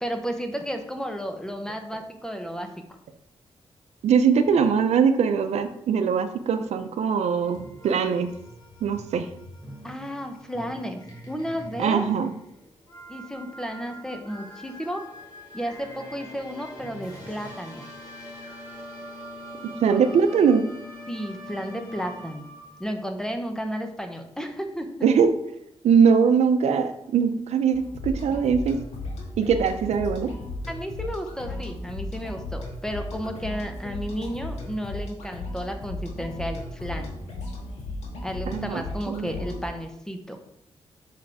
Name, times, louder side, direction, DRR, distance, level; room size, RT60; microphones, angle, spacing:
voice 1, 0.0-3.0 9.8-12.1 13.1-15.1 15.5-17.9 21.1-22.4 22.8-24.9 30.7-37.1 38.2-40.4, equal, 5° left, 5 dB, 0.9 m, -33 dB
voice 2, 4.0-8.3 8.8-9.3 11.8-12.3 19.8-20.6 25.0-25.3 25.8-28.8 29.4-30.3 38.5-39.3, right 6 dB, 80° right, 9 dB, 0.6 m, -21 dB
sound 1, 7.4-22.8, equal, 35° left, 1.9 m, -43 dB
sound 2, 27.7-39.7, left 2 dB, 85° left, 1.6 m, -35 dB
6.0 x 4.7 x 4.8 m, 0.78 s
cardioid pair, 90°, 11 cm